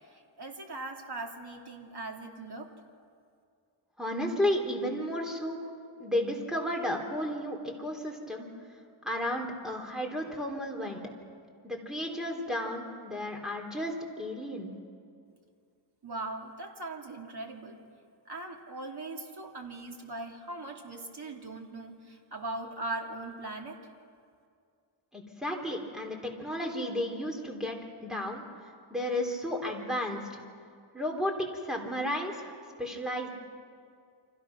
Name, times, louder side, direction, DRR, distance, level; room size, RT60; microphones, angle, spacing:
voice 1, 0.0-2.7 16.0-17.8 18.3-23.8, right 2 dB, 50° right, 2 dB, 2.7 m, -40 dB
voice 2, 4.0-5.6 6.0-8.5 9.0-11.0 11.6-14.7 25.1-28.4 28.9-30.2 30.9-31.3 31.6-32.5 32.8-33.3, left 1 dB, ahead, 1 dB, 3.4 m, -33 dB
29.5 x 25.0 x 6.1 m, 2.3 s
wide cardioid pair, 140°, 49 cm